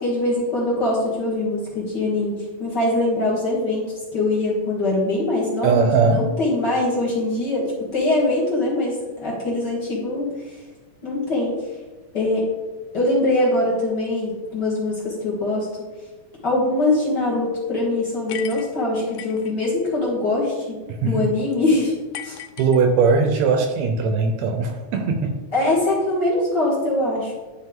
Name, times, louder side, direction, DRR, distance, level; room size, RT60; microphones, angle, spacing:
voice 1, 0.0-3.9 4.1-7.7 7.9-10.6 11.0-11.5 12.1-12.4 12.9-15.7 16.4-20.8 21.0-21.9 22.2-22.4 25.5-27.3, left 2 dB, 40° left, -5 dB, 1.8 m, -22 dB
voice 2, 5.6-6.3 20.9-21.2 22.6-25.4, right 4 dB, 75° right, 5 dB, 1.7 m, -19 dB
sound 1, 18.3-19.5 22.1-23.3, left 11 dB, 80° left, 1.5 m, -37 dB
11.0 x 4.4 x 3.6 m, 1.3 s
omnidirectional pair, 3.4 m